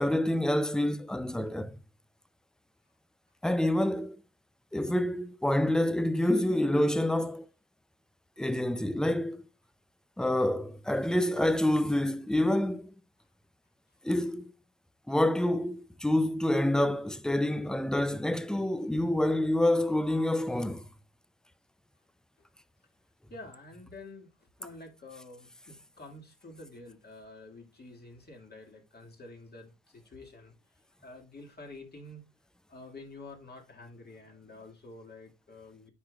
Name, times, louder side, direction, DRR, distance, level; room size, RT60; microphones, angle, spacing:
voice 1, 0.0-1.8 3.4-4.2 4.7-7.4 8.4-9.4 10.2-12.9 14.0-14.4 15.1-20.8, left 1 dB, ahead, 0.4 m, -27 dB
voice 2, 23.3-30.5 31.0-32.2 32.7-35.9, left 2 dB, 35° left, 2.0 m, -49 dB
9.4 x 4.8 x 2.3 m
cardioid pair, 90°, 30 cm